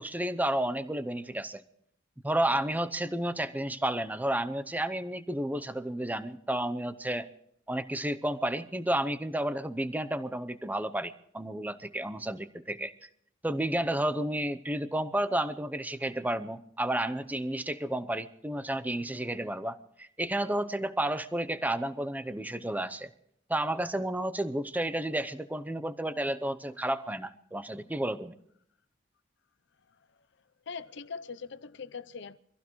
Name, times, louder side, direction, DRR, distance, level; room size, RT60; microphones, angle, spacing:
voice 1, 0.0-1.6 2.2-7.3 7.7-13.1 13.4-23.1 23.5-28.4, right 1 dB, 10° right, 0.7 m, -31 dB
voice 2, 30.7-32.4, left 5 dB, 65° left, 0.7 m, -41 dB
25.0 x 15.5 x 3.1 m
head